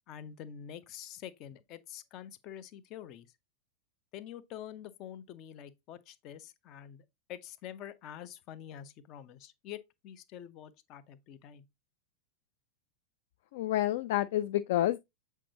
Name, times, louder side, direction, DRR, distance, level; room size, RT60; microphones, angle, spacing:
voice 1, 0.1-3.3 4.1-11.6, left 10 dB, 40° left, 0.7 m, -46 dB
voice 2, 13.5-15.0, left 14 dB, 55° left, 0.3 m, -29 dB
7.5 x 4.5 x 2.9 m
figure-of-eight pair, 90°, 0 cm